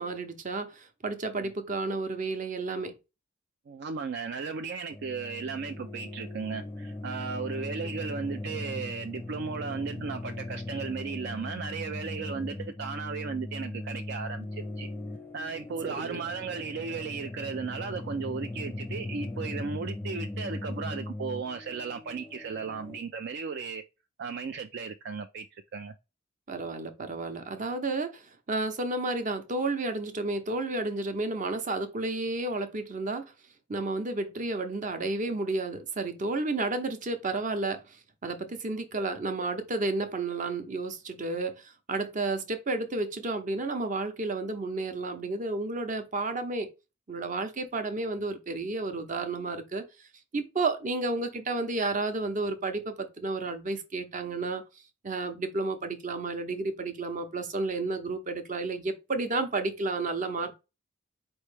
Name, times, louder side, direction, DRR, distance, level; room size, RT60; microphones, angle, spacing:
voice 1, 0.0-2.9 15.8-16.2 26.5-33.2 33.7-38.0 38.2-46.7 47.1-49.8 50.3-54.6 55.0-60.5, right 3 dB, 40° right, 0.8 m, -31 dB
voice 2, 3.7-14.9 15.3-23.8 24.2-25.9, right 5 dB, 60° right, 0.4 m, -35 dB
sound 1, 4.9-23.0, left 1 dB, 10° left, 0.5 m, -39 dB
4.5 x 3.1 x 3.3 m
head